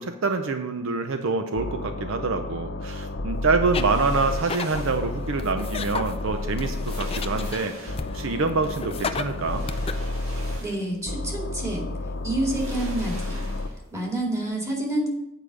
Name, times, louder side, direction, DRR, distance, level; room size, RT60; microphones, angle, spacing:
voice 1, 0.0-9.6, right 4 dB, 65° right, 7 dB, 0.6 m, -26 dB
sound 1, 1.6-4.4 4.7-7.5 7.9-10.6 11.1-13.7, left 2 dB, 60° left, 0.8 m, -31 dB
sound 2, 3.6-5.1 6.2-6.3 6.7-8.3 9.3-11.1 11.4-11.5 12.3-14.0 14.2-14.4, right 1 dB, 85° right, 2.0 m, -42 dB
sound 3, 3.7-9.9, left 5 dB, 30° left, 0.4 m, -35 dB
voice 2, 10.6-11.8 12.2-13.4 13.9-15.1, right 1 dB, 15° right, -2 dB, 2.2 m, -28 dB
9.1 x 4.9 x 6.1 m, 0.88 s
head